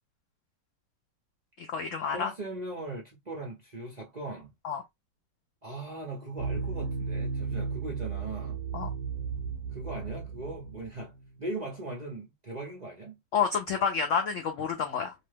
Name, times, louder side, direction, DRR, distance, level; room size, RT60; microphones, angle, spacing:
voice 1, 1.6-2.3 4.6-4.8 8.7-8.9 13.3-15.1, left 6 dB, 75° left, 0.7 m, -29 dB
voice 2, 2.1-4.5 5.6-8.6 9.7-11.1 11.4-13.2, right 2 dB, 40° right, 0.6 m, -39 dB
sound 1, 6.4-11.4, right 5 dB, 75° right, 1.1 m, -34 dB
2.9 x 2.1 x 3.2 m
omnidirectional pair, 1.9 m